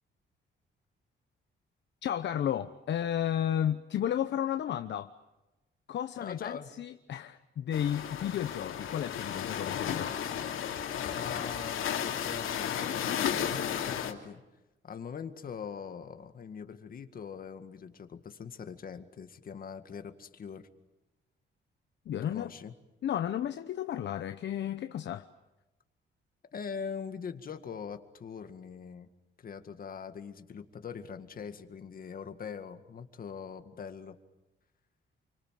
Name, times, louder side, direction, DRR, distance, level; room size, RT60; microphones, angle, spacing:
voice 1, 2.0-5.1 5.9-10.1 22.1-22.5 23.0-25.3, left 10 dB, 60° left, 1.0 m, -33 dB
voice 2, 6.2-6.7 11.1-14.4 14.8-20.7 22.2-22.7 26.5-29.1 29.4-34.2, left 6 dB, 45° left, 2.0 m, -42 dB
sound 1, 7.7-14.1, left 9 dB, 85° left, 3.0 m, -34 dB
29.0 x 25.0 x 7.6 m
cardioid pair, 145°, 20 cm